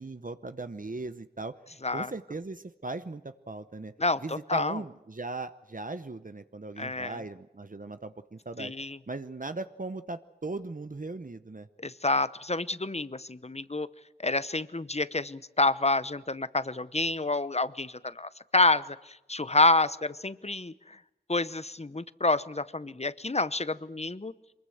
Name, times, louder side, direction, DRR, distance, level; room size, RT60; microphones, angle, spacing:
voice 1, 0.0-1.6 1.9-3.9 4.2-8.7 9.1-11.7, right 3 dB, 55° right, 11 dB, 0.8 m, -38 dB
voice 2, 4.0-4.8 6.8-7.2 8.6-9.0 11.8-13.9 14.2-20.7 21.3-24.3, left 2 dB, 40° left, 16 dB, 0.8 m, -28 dB
23.5 x 21.5 x 7.8 m, 0.99 s
wide cardioid pair, 40°, 17 cm